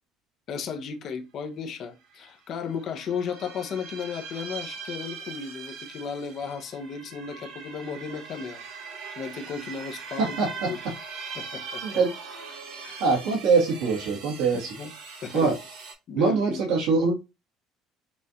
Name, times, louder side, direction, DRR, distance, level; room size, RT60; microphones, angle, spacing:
voice 1, 0.5-8.6 9.1-10.4 10.6-10.8 11.4-12.0 12.8-13.0 14.8-14.9 15.2-15.6 16.1-16.6, left 6 dB, 40° left, 0.8 m, -34 dB
sound 1, 2.1-2.3 2.6-15.9, right 5 dB, 70° right, 1.6 m, -41 dB
voice 2, 10.2-10.7 11.8-12.1 13.0-14.7 15.3-15.6 16.1-17.2, right 4 dB, 85° right, 1.7 m, -23 dB
6.0 x 2.5 x 2.8 m
cardioid pair, 165°, 0 cm